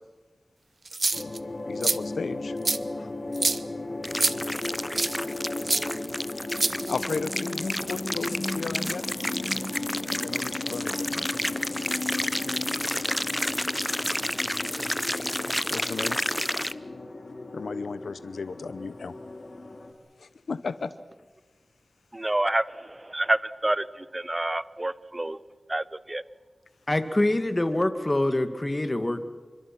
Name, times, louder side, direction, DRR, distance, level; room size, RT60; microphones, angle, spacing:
sound 1, 0.9-1.4 1.8-2.0 2.6-2.8 3.3-3.6 4.2-4.3 5.0-5.1 5.7-5.8 6.5-7.1, right 3 dB, 55° right, 0.9 m, -25 dB
sound 2, 1.1-19.9, left 2 dB, 55° left, 3.4 m, -35 dB
voice 1, 1.7-2.6 3.0-3.1 6.9-9.0 10.2-11.3 15.7-16.2 17.5-19.1 20.2-20.9, left 4 dB, 90° left, 0.8 m, -34 dB
sound 3, 4.0-16.7, equal, 10° left, 0.8 m, -31 dB
voice 2, 22.1-22.6 23.1-23.8 24.1-25.4 25.7-26.2, right 1 dB, 25° right, 0.9 m, -27 dB
voice 3, 26.9-29.2, left 1 dB, 25° left, 1.9 m, -25 dB
28.5 x 25.0 x 6.0 m
wide cardioid pair, 60°, 0 cm